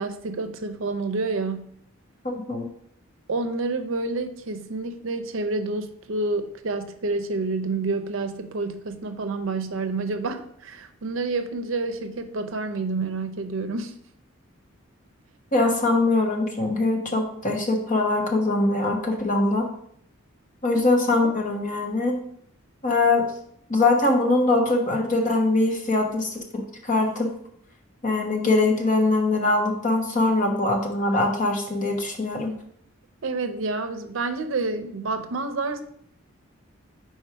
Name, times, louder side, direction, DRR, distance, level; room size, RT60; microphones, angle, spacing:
voice 1, 0.0-1.7 3.3-13.9 20.7-20.8 33.2-35.8, right 3 dB, 70° right, 8 dB, 0.6 m, -28 dB
voice 2, 15.5-19.7 20.6-22.2 22.8-23.2 23.7-26.3 26.9-27.3 28.0-32.5, left 2 dB, 40° left, 2 dB, 1.0 m, -22 dB
4.6 x 4.4 x 4.6 m, 0.65 s
head